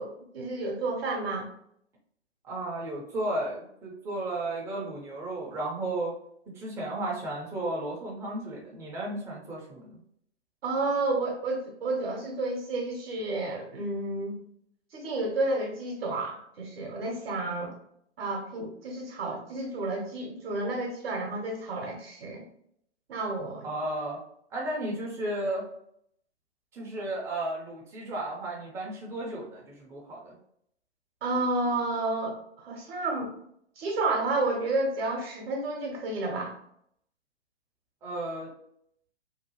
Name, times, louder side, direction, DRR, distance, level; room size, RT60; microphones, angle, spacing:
voice 1, 0.0-1.5 10.6-14.4 14.9-17.8 18.2-22.4 23.1-23.7 31.2-33.3 33.8-36.5, right 2 dB, 60° right, 0 dB, 0.8 m, -31 dB
voice 2, 2.4-6.1 6.6-10.0 23.6-24.2 24.5-25.6 26.7-30.4 38.0-38.5, right 1 dB, 10° right, -3 dB, 0.5 m, -34 dB
2.7 x 2.2 x 2.8 m, 0.70 s
figure-of-eight pair, 115°, 34 cm